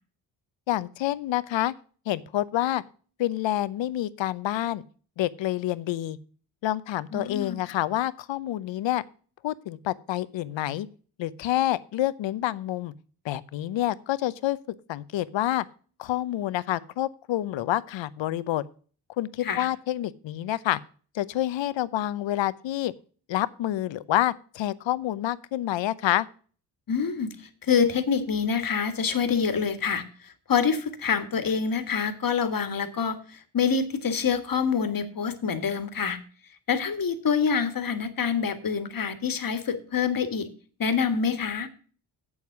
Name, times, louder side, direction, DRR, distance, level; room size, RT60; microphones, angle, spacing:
voice 1, 0.7-1.7 2.1-2.8 3.2-4.8 5.2-6.2 6.6-9.0 9.4-10.9 11.2-12.9 13.2-14.6 14.9-15.6 16.0-18.6 19.2-20.8 21.1-22.9 23.3-26.3, left 14 dB, 65° left, 17 dB, 0.8 m, -28 dB
voice 2, 7.1-7.6 19.4-19.7 26.9-36.2 36.7-40.5 40.8-41.7, left 6 dB, 45° left, 9 dB, 1.7 m, -26 dB
8.0 x 7.3 x 6.0 m, 0.41 s
supercardioid pair, 50°, 48 cm